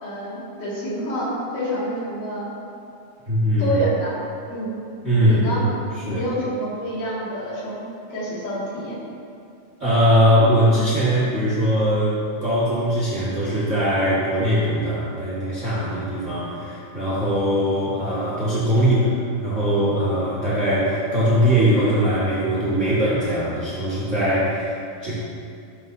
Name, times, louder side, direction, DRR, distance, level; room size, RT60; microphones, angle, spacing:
voice 1, 0.0-2.5 3.6-4.2 4.5-4.7 5.2-5.6 6.0-7.8 8.1-9.0, equal, 55° left, -7 dB, 3.4 m, -27 dB
voice 2, 3.3-3.8 5.0-5.6 6.1-6.2 9.8-19.1 19.4-25.2, equal, 80° right, -9 dB, 0.6 m, -21 dB
13.0 x 7.3 x 2.7 m, 2.5 s
omnidirectional pair, 4.7 m